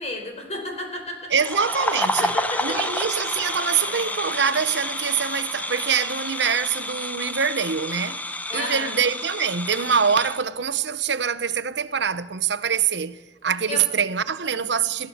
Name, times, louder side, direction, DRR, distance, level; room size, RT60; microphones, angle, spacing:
voice 1, 0.0-1.3 2.0-2.8 8.5-8.9 13.7-13.8, left 1 dB, 40° left, 4.8 m, -32 dB
sound 1, 1.3-10.4, left 1 dB, 10° left, 1.0 m, -29 dB
voice 2, 1.3-2.4 2.6-8.2 8.5-15.1, right 7 dB, 70° right, 0.9 m, -24 dB
sound 2, 1.9-10.1, left 2 dB, 80° left, 3.2 m, -45 dB
22.0 x 16.5 x 7.3 m
head